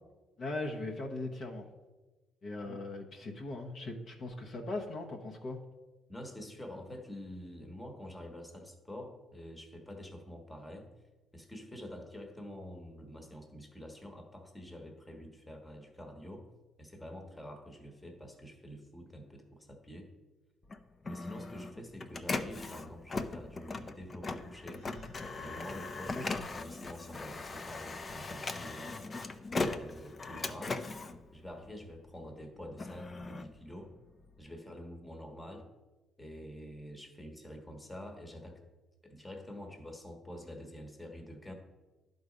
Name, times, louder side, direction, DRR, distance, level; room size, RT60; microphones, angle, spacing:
voice 1, 0.4-1.6 2.4-5.6 26.1-26.4, left 2 dB, 50° left, 1 dB, 1.0 m, -39 dB
voice 2, 6.1-10.9 11.3-16.5 16.8-20.1 21.0-24.9 25.4-29.2 29.6-30.8 31.3-33.9 34.4-35.7 36.2-38.6 39.0-41.5, equal, 10° left, 3 dB, 1.2 m, -47 dB
Printer, 20.6-32.1 32.5-34.4, left 3 dB, 30° left, 0.5 m, -39 dB
Gasp, 24.6-25.2, right 1 dB, 80° left, 2.2 m, -56 dB
11.0 x 4.0 x 5.0 m, 1.2 s
cardioid pair, 110°, 0 cm